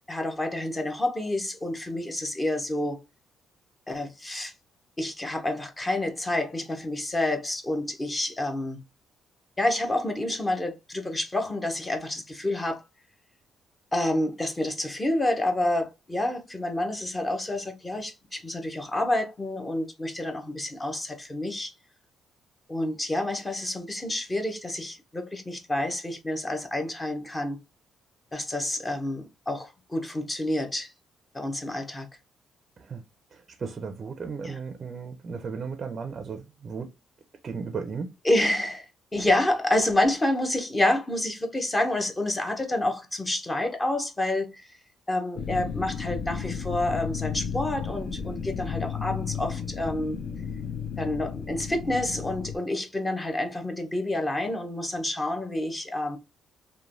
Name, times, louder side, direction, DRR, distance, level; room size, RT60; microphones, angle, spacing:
voice 1, 0.1-3.0 3.9-4.5 5.0-8.8 9.6-12.8 13.9-21.7 22.7-27.6 28.3-30.9 31.3-32.1 34.4-34.6 38.2-44.7 45.1-50.2 51.0-56.2, left 1 dB, 20° left, 0.6 m, -28 dB
voice 2, 33.3-36.9 37.4-38.1, right 5 dB, 40° right, 0.4 m, -35 dB
sound 1, 45.4-52.6, left 7 dB, 55° left, 0.3 m, -33 dB
3.0 x 2.1 x 2.5 m
cardioid pair, 95°, 0 cm